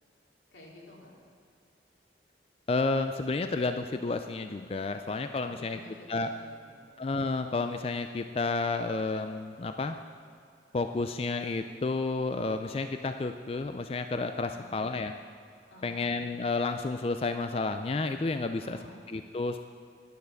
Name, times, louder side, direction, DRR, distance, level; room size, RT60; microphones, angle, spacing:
voice 1, 0.5-1.2 5.4-6.9 14.5-15.0 15.7-16.1 18.6-19.0, left 1 dB, 90° left, -2 dB, 2.6 m, -51 dB
voice 2, 2.7-5.8 6.1-6.3 7.0-10.0 10.7-15.1 15.8-18.8 19.1-19.6, left 3 dB, 35° left, 8 dB, 0.4 m, -31 dB
10.0 x 9.5 x 6.5 m, 2.4 s
head